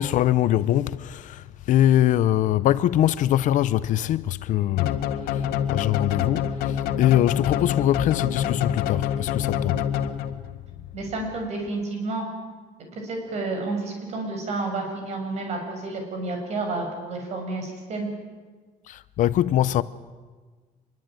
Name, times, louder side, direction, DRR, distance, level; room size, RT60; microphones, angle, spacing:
voice 1, 0.0-10.5 18.9-19.8, left 12 dB, 55° left, 0.7 m, -23 dB
sound 1, 4.8-10.5, left 9 dB, 85° left, 1.9 m, -27 dB
voice 2, 10.9-12.3 12.9-18.1, right 3 dB, 45° right, 6.9 m, -30 dB
25.5 x 22.5 x 9.2 m
cardioid pair, 170°, 16 cm